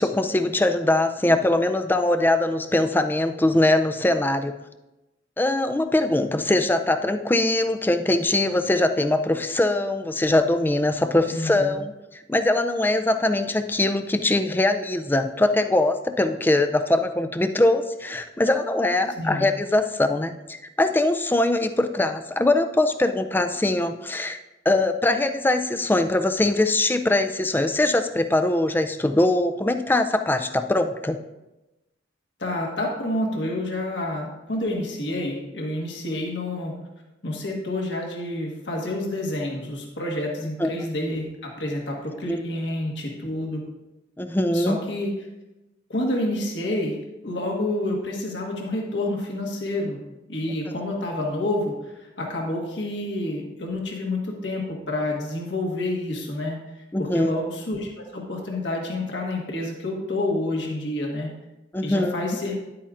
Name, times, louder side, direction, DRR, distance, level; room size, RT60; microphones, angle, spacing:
voice 1, 0.0-4.5 5.4-11.9 12.3-24.4 24.7-31.2 40.6-40.7 42.3-42.4 44.2-44.8 56.9-57.3 61.7-62.2, left 2 dB, 10° left, 8 dB, 0.4 m, -22 dB
voice 2, 11.3-11.7 19.2-19.5 32.4-36.7 37.2-43.6 44.5-45.1 45.9-47.0 47.2-50.0 50.3-56.6 57.0-61.3 61.8-62.6, left 1 dB, 70° left, -1 dB, 1.5 m, -28 dB
10.5 x 8.5 x 2.5 m, 1.0 s
head